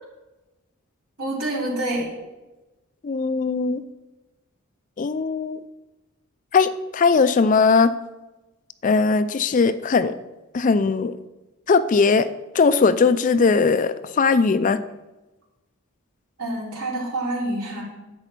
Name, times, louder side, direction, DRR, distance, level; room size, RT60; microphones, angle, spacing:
voice 1, 1.2-2.1 16.4-17.8, right 1 dB, 85° right, -4 dB, 3.8 m, -27 dB
voice 2, 3.0-3.8 5.0-5.6 6.5-7.9 8.8-10.1 10.5-11.2 11.7-12.3 12.5-14.8, left 4 dB, 35° left, 13 dB, 0.4 m, -19 dB
9.9 x 7.9 x 4.5 m, 1.1 s
head